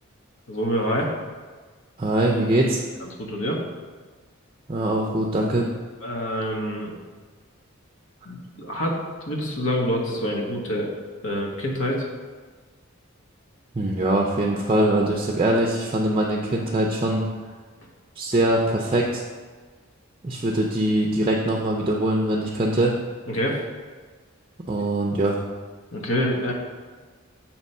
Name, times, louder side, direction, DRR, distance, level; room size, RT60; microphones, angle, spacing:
voice 1, 0.5-1.1 3.0-3.6 6.0-6.9 8.2-10.9 11.2-12.1 23.3-23.6 25.9-26.5, equal, 75° left, -1 dB, 1.2 m, -26 dB
voice 2, 2.0-2.8 4.7-5.7 13.7-17.2 18.2-19.2 20.2-22.9 24.7-25.4, right 1 dB, 25° right, -1 dB, 0.5 m, -22 dB
7.3 x 3.0 x 5.4 m, 1.4 s
head